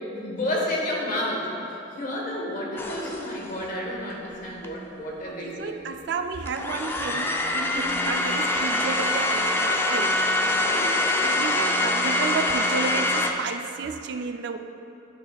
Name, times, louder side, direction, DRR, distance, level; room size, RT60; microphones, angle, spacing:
voice 1, 0.0-1.5 1.9-5.7 7.7-8.0 10.6-11.0, left 1 dB, 45° left, -2 dB, 1.3 m, -31 dB
Hair Dryer, 2.8-3.5 4.6-4.7 6.5-13.3, left 1 dB, 10° left, 0.4 m, -24 dB
voice 2, 5.3-10.2 10.9-11.0 11.2-14.6, right 5 dB, 60° right, 7 dB, 0.3 m, -32 dB
11.5 x 6.3 x 2.3 m, 2.8 s
head